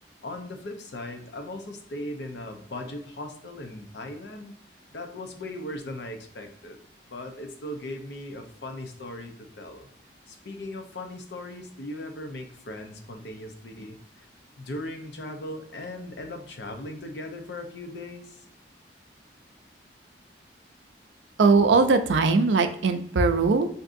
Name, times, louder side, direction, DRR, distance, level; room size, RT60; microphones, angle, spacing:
voice 1, 0.2-4.5 4.9-6.8 7.1-9.9 10.3-14.3 14.6-18.4, left 1 dB, 70° left, 5 dB, 0.6 m, -38 dB
voice 2, 21.4-23.7, right 4 dB, 80° right, 7 dB, 0.4 m, -20 dB
3.6 x 2.6 x 2.5 m, 0.67 s
head